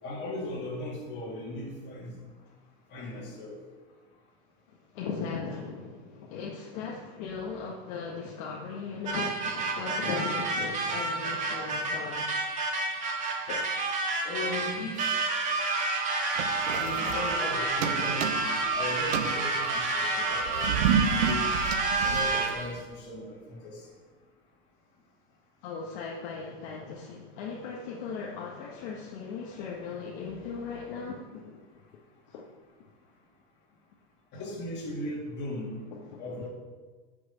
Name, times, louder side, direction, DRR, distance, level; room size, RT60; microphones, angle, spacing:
voice 1, 0.0-2.2 2.9-3.6 14.2-15.0 16.7-21.5 22.0-23.8 34.3-35.8 36.2-36.5, left 1 dB, 35° left, -2 dB, 3.0 m, -37 dB
voice 2, 4.9-12.3 13.5-13.7 14.7-14.8 18.0-18.2 25.6-31.6 32.3-32.4 34.3-34.4 35.9-36.5, left 5 dB, 50° left, -2 dB, 1.5 m, -38 dB
sound 1, 9.1-22.7, right 3 dB, 25° right, 1.8 m, -29 dB
sound 2, 16.4-17.5 17.8-18.7 19.0-22.8, right 7 dB, 80° right, 1.0 m, -30 dB
11.0 x 6.2 x 6.9 m, 1.4 s
supercardioid pair, 155°, 32 cm